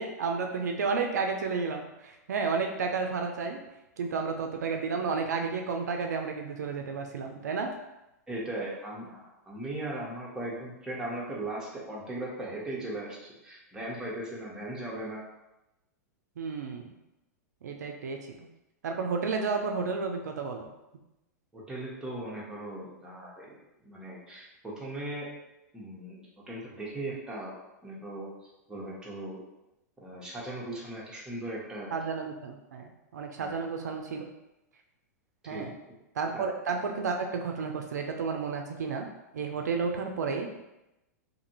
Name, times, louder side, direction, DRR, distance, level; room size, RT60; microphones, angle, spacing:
voice 1, 0.0-3.6 4.0-7.7 16.4-16.9 17.6-18.5 18.8-20.7 31.9-34.3 35.5-35.7 36.2-39.1 39.3-40.6, right 5 dB, 80° right, 3 dB, 0.4 m, -32 dB
voice 2, 8.3-15.2 21.5-23.6 23.8-25.3 25.7-27.5 27.8-28.3 28.7-29.4 30.0-31.9 33.4-33.6 35.4-35.7 36.3-36.4, right 1 dB, 10° right, -6 dB, 0.9 m, -38 dB
2.6 x 2.5 x 2.8 m, 0.93 s
hypercardioid pair, 110°, 9 cm